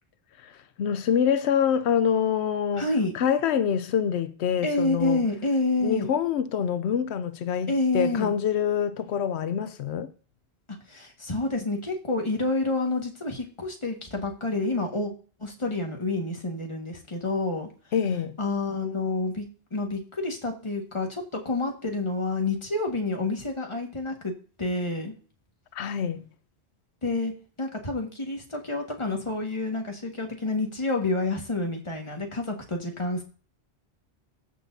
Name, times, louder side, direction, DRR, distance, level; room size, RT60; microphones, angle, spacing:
voice 1, 0.4-5.2 5.8-10.1 17.9-18.4 25.7-26.2, left 8 dB, 85° left, 0.9 m, -26 dB
voice 2, 2.7-3.1 4.6-6.1 7.7-8.3 10.9-15.1 15.4-17.7 18.4-24.3 24.6-25.1 27.0-27.3 27.6-33.2, left 2 dB, 30° left, 1.6 m, -28 dB
14.0 x 6.3 x 2.7 m
omnidirectional pair, 1.1 m